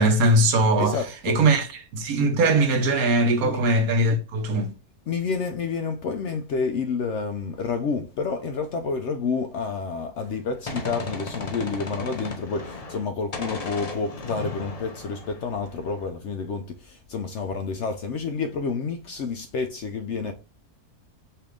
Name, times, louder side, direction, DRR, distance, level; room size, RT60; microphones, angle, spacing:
voice 1, 0.0-1.0 1.2-1.7 1.9-4.7, right 2 dB, 75° right, 1.2 m, -20 dB
voice 2, 0.8-1.4 3.4-3.6 5.1-20.3, left 5 dB, 65° left, 0.7 m, -29 dB
Gunshot gunfire, 10.2-13.1 13.3-16.1, left 3 dB, 35° left, 0.6 m, -36 dB
5.6 x 2.5 x 3.3 m
omnidirectional pair, 1.6 m